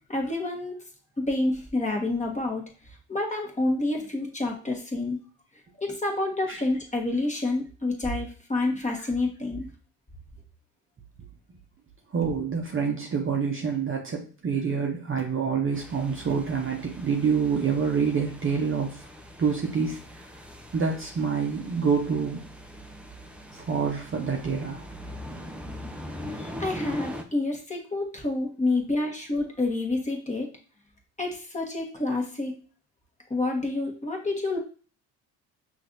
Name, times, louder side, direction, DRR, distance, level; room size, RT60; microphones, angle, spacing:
voice 1, 0.1-0.7 1.2-2.6 3.1-5.2 5.8-9.7 26.3-30.5 31.2-32.6 33.3-34.6, left 2 dB, 15° left, 1 dB, 1.3 m, -28 dB
voice 2, 12.1-19.0 19.4-20.3 20.7-22.4 23.5-24.8 26.4-26.5, right 6 dB, 25° right, 1 dB, 0.8 m, -27 dB
sound 1, 15.7-27.2, left 1 dB, 5° right, 0.4 m, -42 dB
5.7 x 2.7 x 2.6 m, 0.38 s
hypercardioid pair, 70°, 49 cm